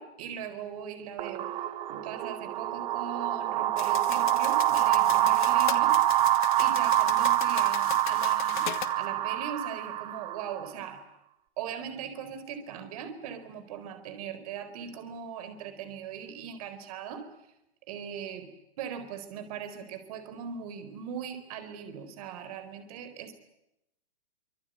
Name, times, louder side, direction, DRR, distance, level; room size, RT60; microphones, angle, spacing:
voice 1, 0.0-1.5 1.9-5.9 6.3-11.0 11.6-17.2 17.9-18.5 18.8-23.3, right 7 dB, 35° right, 10 dB, 4.3 m, -40 dB
sound 1, 1.2-10.7, right 13 dB, 15° right, 1.1 m, -26 dB
sound 2, 3.8-8.9, left 11 dB, 50° left, 2.1 m, -38 dB
25.5 x 25.0 x 9.3 m, 0.86 s
hypercardioid pair, 170°, 31 cm